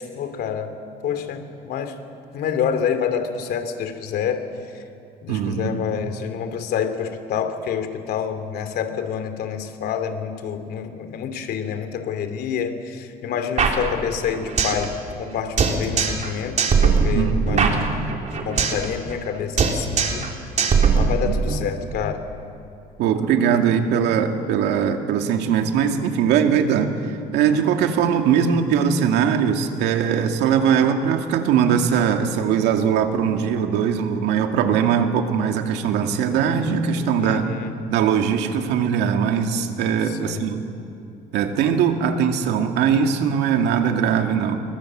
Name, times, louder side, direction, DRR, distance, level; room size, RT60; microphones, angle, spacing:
voice 1, 0.1-0.8 1.0-2.0 2.3-4.8 5.2-17.9 18.4-22.2 23.5-23.6 37.2-37.7 40.1-40.5, left 7 dB, 70° left, 8 dB, 2.8 m, -28 dB
voice 2, 5.3-5.8 17.1-17.8 21.2-21.3 23.0-37.5 37.9-40.6 41.3-44.6, right 7 dB, 85° right, 4 dB, 2.3 m, -21 dB
sound 1, 13.6-14.9 15.1-15.2 15.6-16.3 16.6-18.9 19.1-19.3 19.6-20.3 20.6-21.6, right 5 dB, 45° right, 3.5 m, -20 dB
29.0 x 23.5 x 7.6 m, 2.7 s
cardioid pair, 110°, 17 cm